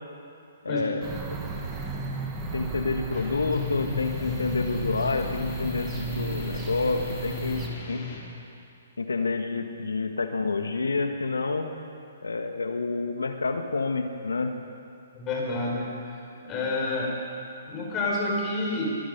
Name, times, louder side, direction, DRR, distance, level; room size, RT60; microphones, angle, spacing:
voice 1, 0.6-1.4 2.5-8.0 9.0-11.7 12.2-14.5, left 3 dB, 80° left, 6 dB, 1.6 m, -28 dB
sound 1, 1.0-7.7, right 5 dB, 20° right, 1.8 m, -35 dB
sound 2, 3.1-8.2, left 6 dB, 40° left, 3.9 m, -35 dB
voice 2, 15.1-15.9 16.4-17.1 17.7-18.9, left 2 dB, 25° left, -3 dB, 4.8 m, -28 dB
23.0 x 11.0 x 5.4 m, 2.6 s
figure-of-eight pair, 130°, 0 cm